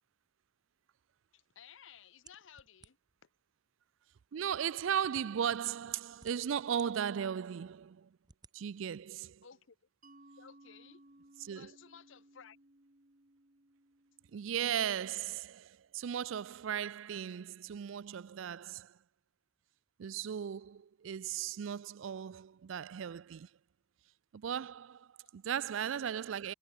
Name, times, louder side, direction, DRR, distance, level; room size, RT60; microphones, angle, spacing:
voice 1, 1.3-3.0 9.4-9.8 10.4-11.0 11.4-12.6, left 7 dB, 70° left, 0.8 m, -56 dB
sound 1, 2.3-3.2 4.0-4.1 4.7-5.0 5.8-6.9 7.4-7.5 8.2-8.6, right 5 dB, 20° right, 1.0 m, -58 dB
voice 2, 4.3-8.2 8.5-9.5 11.4-11.7 14.3-19.0 20.0-23.5 24.3-26.5, right 8 dB, 75° right, 0.4 m, -37 dB
Mallet percussion, 10.0-15.4, right 1 dB, 40° right, 2.3 m, -62 dB
head